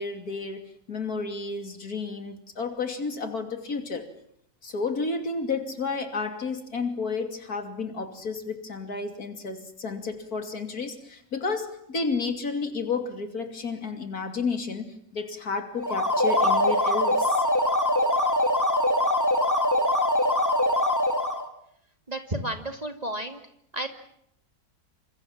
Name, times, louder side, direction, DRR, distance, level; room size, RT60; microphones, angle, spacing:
voice 1, 0.0-4.1 4.6-17.4, left 4 dB, 65° left, 6 dB, 3.2 m, -31 dB
sound 1, 15.8-21.5, left 1 dB, 10° left, 2.5 m, -23 dB
voice 2, 22.1-23.4 23.7-23.9, right 1 dB, 25° right, 6 dB, 2.4 m, -32 dB
28.5 x 26.0 x 7.4 m, 0.73 s
omnidirectional pair, 1.7 m